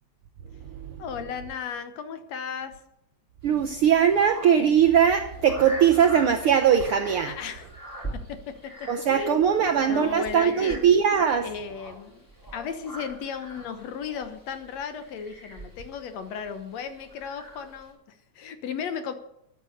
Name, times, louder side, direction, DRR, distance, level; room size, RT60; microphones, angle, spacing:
voice 1, 1.0-2.7 7.3-7.7 8.3-8.5 8.8-10.8 11.4-19.1, left 7 dB, 70° left, 9 dB, 2.1 m, -35 dB
sound 1, 3.4-17.9, right 1 dB, 5° left, 3.6 m, -43 dB
voice 2, 3.4-7.3 8.9-11.5, right 8 dB, 70° right, 6 dB, 1.3 m, -20 dB
13.5 x 9.3 x 6.6 m, 0.81 s
omnidirectional pair, 3.4 m